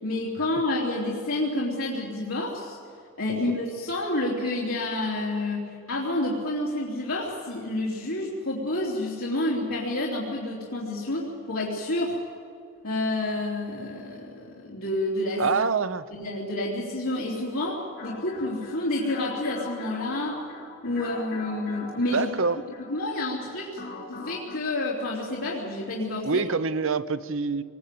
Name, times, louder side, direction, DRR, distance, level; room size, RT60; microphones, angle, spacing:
voice 1, 0.0-2.8 3.2-12.2 12.8-15.4 16.1-20.4 20.8-22.3 22.9-23.8 24.1-26.4, left 1 dB, 80° left, -5 dB, 3.6 m, -29 dB
voice 2, 15.4-16.1 22.1-22.6 26.2-27.6, right 4 dB, 70° right, 14 dB, 0.7 m, -25 dB
sound 1, 18.0-24.6, left 3 dB, 45° left, 2.5 m, -41 dB
24.0 x 21.5 x 8.6 m, 2.4 s
head